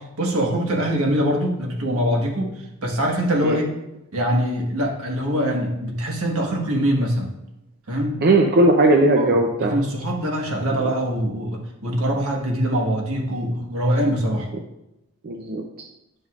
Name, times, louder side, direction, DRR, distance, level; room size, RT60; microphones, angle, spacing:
voice 1, 0.0-2.5 2.8-3.8 4.1-7.3 7.9-8.2 9.2-14.5, equal, 75° right, 1 dB, 1.4 m, -23 dB
voice 2, 8.2-9.7 10.8-10.9 15.2-15.6, right 2 dB, 45° right, 2 dB, 0.5 m, -17 dB
9.6 x 5.4 x 2.4 m, 0.89 s
head